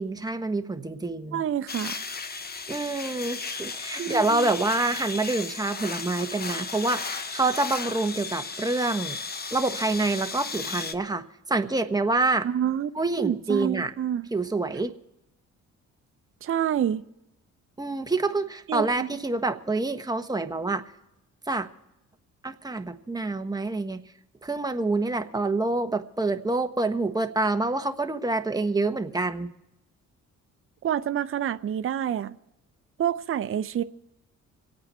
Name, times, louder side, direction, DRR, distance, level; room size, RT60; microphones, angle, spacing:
voice 1, 0.0-1.4 2.7-9.2 9.5-12.5 12.9-13.9 14.3-14.9 17.8-20.9 21.5-21.7 22.4-24.0 24.4-29.5, right 2 dB, 10° right, 6 dB, 1.1 m, -27 dB
voice 2, 1.3-2.0 4.0-4.5 12.4-12.9 13.2-14.3 16.4-17.0 18.7-19.1 30.8-32.4 33.0-33.8, right 10 dB, 40° right, 10 dB, 0.6 m, -27 dB
sound 1, 1.7-10.9, left 4 dB, 30° left, 0.9 m, -35 dB
26.5 x 8.9 x 4.4 m, 0.92 s
cardioid pair, 95°, 32 cm